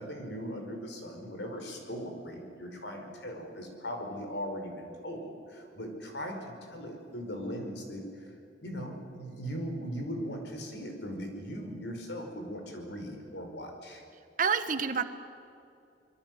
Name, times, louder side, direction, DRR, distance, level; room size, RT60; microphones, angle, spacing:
voice 1, 0.0-8.0 8.6-14.0, equal, 70° left, 4 dB, 5.1 m, -39 dB
voice 2, 14.4-15.0, right 6 dB, 50° right, 10 dB, 1.3 m, -28 dB
25.5 x 23.0 x 7.9 m, 2.6 s
head